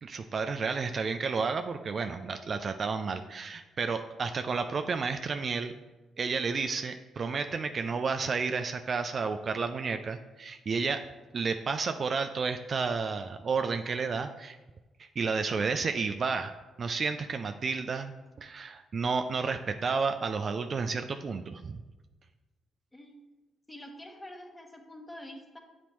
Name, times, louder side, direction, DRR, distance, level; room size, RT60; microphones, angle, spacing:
voice 1, 0.0-5.7 6.2-11.0 11.3-14.6 15.0-16.5 16.8-18.1 18.4-21.8, right 5 dB, 50° right, 7 dB, 0.3 m, -31 dB
voice 2, 23.7-25.6, left 1 dB, 15° left, 3 dB, 1.1 m, -46 dB
8.3 x 4.0 x 3.0 m, 1.1 s
hypercardioid pair, 45°, 0 cm